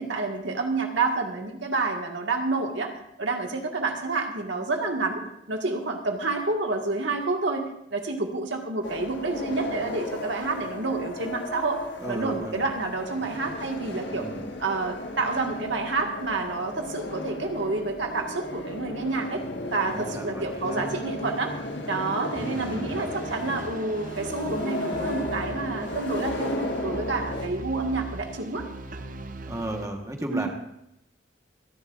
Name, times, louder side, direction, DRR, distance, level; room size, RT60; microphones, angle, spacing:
voice 1, 0.0-2.9 3.2-5.2 5.5-11.8 12.1-14.3 14.6-19.4 19.7-21.5 21.9-28.7 30.3-30.5, right 3 dB, 75° right, 2 dB, 1.8 m, -29 dB
sound 1, 8.8-27.5, left 1 dB, 65° left, 1.6 m, -35 dB
voice 2, 12.0-12.6 14.1-14.4 19.9-20.8 22.3-23.7 29.5-30.5, right 1 dB, 15° right, 2 dB, 1.3 m, -35 dB
sound to run, 22.3-29.9, right 2 dB, 45° right, 0.7 m, -39 dB
27.0 x 11.0 x 2.5 m, 0.80 s
head